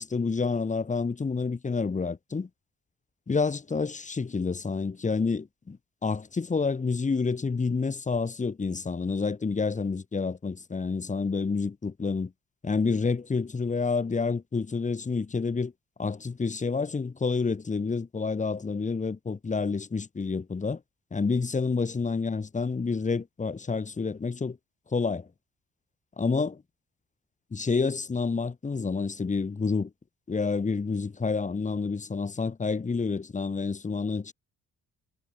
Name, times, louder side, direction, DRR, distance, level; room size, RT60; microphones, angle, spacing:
voice 1, 0.0-2.5 3.3-12.3 12.6-15.7 16.0-20.8 21.1-24.6 24.9-25.3 26.2-26.5 27.5-29.9 30.3-34.3, left 4 dB, 25° left, 1.6 m, -29 dB
cardioid pair, 90°, 30 cm